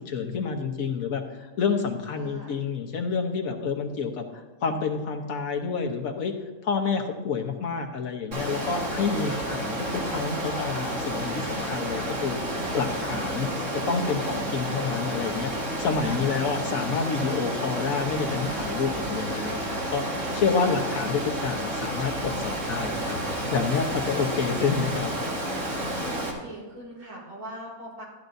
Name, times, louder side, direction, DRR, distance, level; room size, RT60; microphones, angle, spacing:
voice 1, 0.0-6.3 6.6-15.5 15.8-23.2 23.5-25.1, left 5 dB, 70° left, 4 dB, 1.5 m, -28 dB
voice 2, 2.1-2.6 16.0-16.7 20.6-21.0 26.0-28.0, right 1 dB, 80° right, -5 dB, 4.5 m, -41 dB
Water, 8.3-26.3, right 1 dB, 55° right, 2.1 m, -30 dB
13.5 x 12.0 x 2.7 m, 1.3 s
omnidirectional pair, 1.5 m